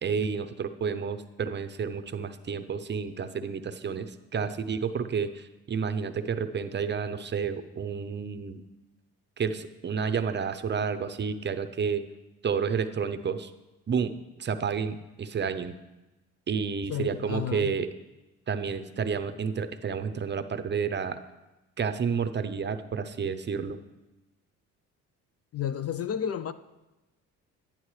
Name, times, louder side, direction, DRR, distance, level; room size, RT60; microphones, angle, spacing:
voice 1, 0.0-8.6 9.4-12.0 12.4-13.5 13.9-14.1 14.4-15.7 16.5-17.9 18.5-21.2 21.8-23.8, right 6 dB, 35° right, 0.6 m, -30 dB
voice 2, 16.9-17.8 25.5-26.5, left 9 dB, 50° left, 0.5 m, -32 dB
10.5 x 10.0 x 3.2 m
cardioid pair, 85°, 33 cm